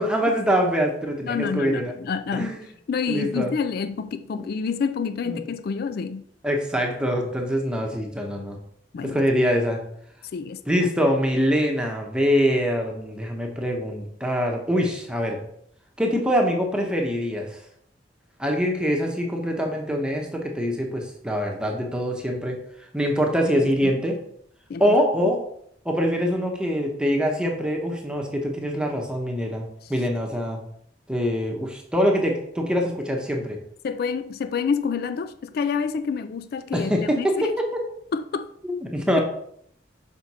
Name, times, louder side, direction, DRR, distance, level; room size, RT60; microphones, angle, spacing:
voice 1, 0.0-1.9 2.3-2.7 3.1-3.5 4.3-4.5 5.3-5.4 6.4-8.6 9.0-9.8 10.7-15.4 16.0-17.6 18.4-22.6 22.9-24.2 24.8-25.4 25.8-30.6 31.1-33.6 36.7-37.7 38.6-39.2, equal, 5° right, 1 dB, 0.9 m, -24 dB
voice 2, 1.2-2.6 2.9-6.2 8.9-9.2 10.3-10.8 23.8-23.9 24.7-25.0 33.8-37.5 38.1-38.5, left 5 dB, 60° left, 11 dB, 0.3 m, -28 dB
6.3 x 5.0 x 4.2 m, 0.68 s
head